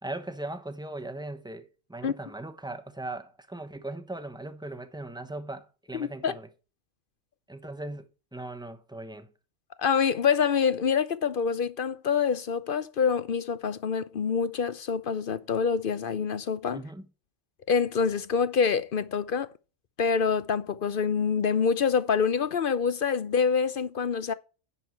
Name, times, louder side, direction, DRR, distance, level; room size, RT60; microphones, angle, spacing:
voice 1, 0.0-6.5 7.5-9.3 16.7-17.1, right 2 dB, 5° right, 1.0 m, -39 dB
voice 2, 5.9-6.3 9.8-16.8 17.7-19.5 20.0-24.3, left 6 dB, 55° left, 0.7 m, -26 dB
10.5 x 7.2 x 4.5 m
omnidirectional pair, 1.3 m